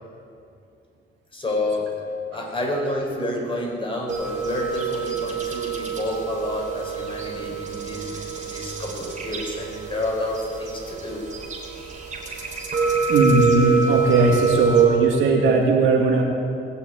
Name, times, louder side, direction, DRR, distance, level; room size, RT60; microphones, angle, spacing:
voice 1, 1.3-1.9 2.3-11.2, left 1 dB, 25° left, -1 dB, 4.8 m, -29 dB
sound 1, 4.1-14.9, right 5 dB, 40° right, 4.0 m, -26 dB
voice 2, 13.1-16.2, right 4 dB, 80° right, -1 dB, 2.7 m, -18 dB
20.0 x 7.2 x 8.6 m, 2.5 s
cardioid pair, 90°, 20 cm